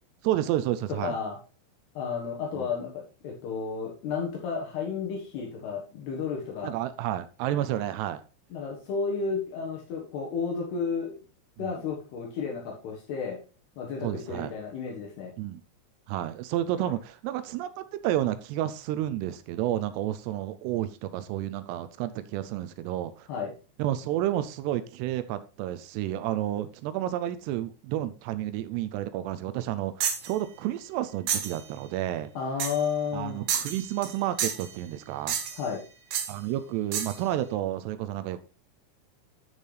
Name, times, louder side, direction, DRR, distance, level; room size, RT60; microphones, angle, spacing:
voice 1, 0.2-1.2 2.6-2.7 6.6-8.2 11.6-11.8 14.0-14.5 15.4-15.6 16.1-23.3 23.8-32.3 33.1-35.4 36.3-38.4, right 13 dB, 85° right, 13 dB, 2.4 m, -31 dB
voice 2, 1.0-1.4 1.9-6.7 8.5-11.1 11.6-13.4 13.8-15.3 23.3-23.5 32.3-33.4 35.6-35.8, left 5 dB, 70° left, -1 dB, 3.2 m, -32 dB
sound 1, 30.0-30.3 31.3-31.6 32.6-32.9 33.5-34.1 34.4-34.7 35.3-35.7 36.1-36.3 36.9-37.2, right 8 dB, 65° right, 2.2 m, -30 dB
13.0 x 5.4 x 3.3 m, 0.35 s
omnidirectional pair, 5.3 m